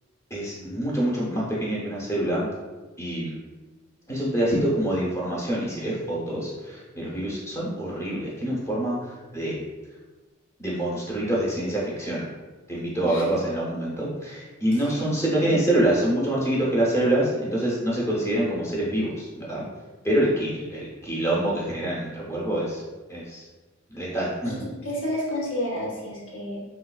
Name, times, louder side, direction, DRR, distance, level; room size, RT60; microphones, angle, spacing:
voice 1, 0.3-2.5 3.0-3.4 4.1-9.6 10.6-12.3 12.7-19.6 20.0-22.8 23.1-23.4 23.9-24.6, right 1 dB, 15° left, -6 dB, 0.7 m, -26 dB
voice 2, 14.7-15.0 15.4-15.6 24.4-26.6, left 1 dB, 65° left, -4 dB, 0.9 m, -31 dB
3.3 x 2.3 x 2.3 m, 1.2 s
head